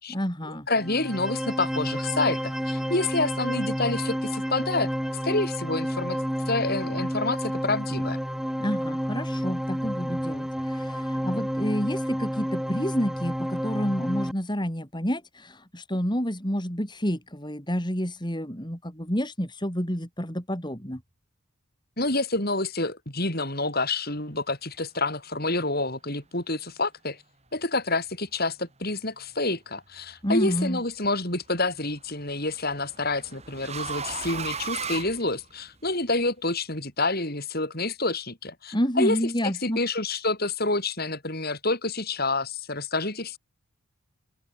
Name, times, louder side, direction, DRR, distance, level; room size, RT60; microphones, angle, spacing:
voice 1, 0.1-0.7 8.6-21.0 30.2-30.8 38.7-39.8, equal, 20° left, 6.0 m, -29 dB
voice 2, 0.7-4.9 5.2-6.2 6.5-8.2 22.0-27.2 27.5-39.2 39.4-43.4, left 2 dB, 45° left, 7.1 m, -28 dB
sound 1, 0.8-14.3, equal, ahead, 2.0 m, -30 dB
sound 2, 30.0-30.5 31.9-35.9, right 6 dB, 30° right, 5.5 m, -36 dB
open air
head